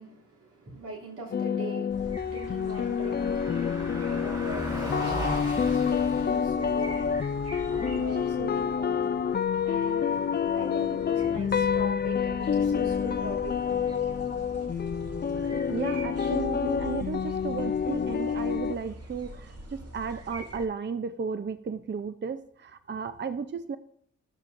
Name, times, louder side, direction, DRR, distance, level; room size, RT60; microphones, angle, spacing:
voice 1, 0.0-9.1 9.6-10.1 10.5-13.8, right 1 dB, 85° right, -4 dB, 2.9 m, -42 dB
sound 1, 1.3-18.8, left 7 dB, 35° left, 0.4 m, -28 dB
sound 2, 1.9-20.7, right 1 dB, 50° right, 2.2 m, -44 dB
Car passing by, 2.1-18.3, equal, 15° right, 3.5 m, -42 dB
voice 2, 15.7-23.8, right 5 dB, 35° right, 11 dB, 0.6 m, -34 dB
13.5 x 7.1 x 2.6 m, 0.68 s
cardioid pair, 55°, 31 cm